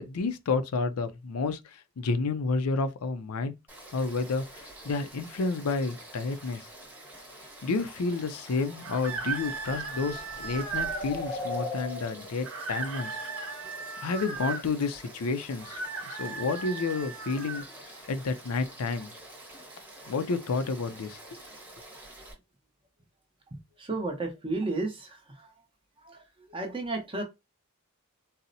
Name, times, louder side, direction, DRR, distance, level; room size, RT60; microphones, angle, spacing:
voice 1, 0.0-3.5 3.9-6.7 7.6-13.2 14.0-15.8 16.1-17.6 18.1-19.1 20.1-21.4, left 4 dB, 85° left, 0.5 m, -30 dB
Frog / Stream, 3.7-22.3, right 1 dB, 10° right, 1.0 m, -48 dB
sound 1, 8.2-14.0, left 2 dB, 15° left, 0.8 m, -40 dB
sound 2, 8.8-11.1 12.4-14.6 15.6-17.7, right 5 dB, 70° right, 0.7 m, -36 dB
voice 2, 23.8-25.5 26.0-26.2 26.5-27.2, right 2 dB, 25° right, 0.7 m, -33 dB
4.0 x 2.0 x 2.6 m
head